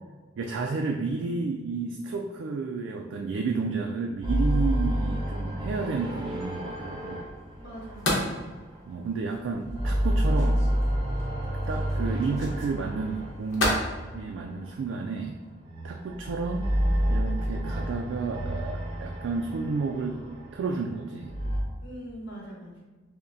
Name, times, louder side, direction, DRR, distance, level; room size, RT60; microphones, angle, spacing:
voice 1, 0.4-7.3 8.9-10.6 11.7-13.8 14.1-15.4 15.8-16.7 17.1-20.2 20.5-21.3, right 4 dB, 70° right, 2 dB, 0.3 m, -31 dB
sound 1, 4.2-9.2 9.5-14.8 15.6-21.6, equal, 25° right, 0.6 m, -30 dB
sound 2, 6.4-13.8, left 1 dB, 85° left, 0.9 m, -35 dB
voice 2, 7.5-8.2 21.8-22.8, right 1 dB, 65° left, -4 dB, 1.1 m, -42 dB
5.3 x 2.1 x 2.6 m, 1.3 s
head